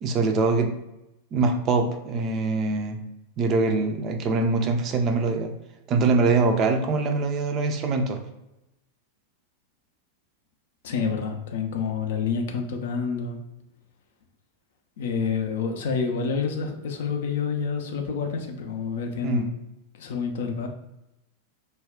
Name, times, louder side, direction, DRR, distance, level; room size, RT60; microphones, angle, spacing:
voice 1, 0.0-0.7 1.3-3.0 3.4-5.5 5.9-8.2 19.2-19.5, right 3 dB, 35° right, 5 dB, 0.4 m, -23 dB
voice 2, 10.8-13.4 15.0-19.5 20.0-20.7, left 5 dB, 60° left, 4 dB, 0.4 m, -28 dB
2.3 x 2.1 x 3.5 m, 0.90 s
figure-of-eight pair, 90°, 0 cm